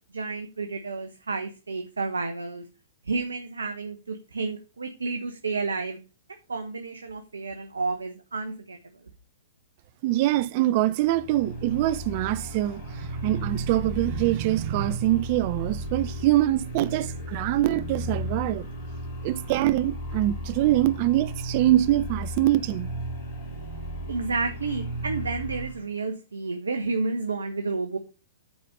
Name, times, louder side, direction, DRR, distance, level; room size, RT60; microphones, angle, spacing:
voice 1, 0.1-2.6 3.0-6.0 6.5-8.8 24.1-28.0, right 3 dB, 85° right, 1.0 m, -31 dB
voice 2, 10.0-18.6 19.2-22.9, right 15 dB, 45° right, 0.7 m, -24 dB
sound 1, 11.1-25.8, right 1 dB, 50° left, 4.5 m, -35 dB
9.3 x 4.3 x 6.6 m
hypercardioid pair, 115°, 0 cm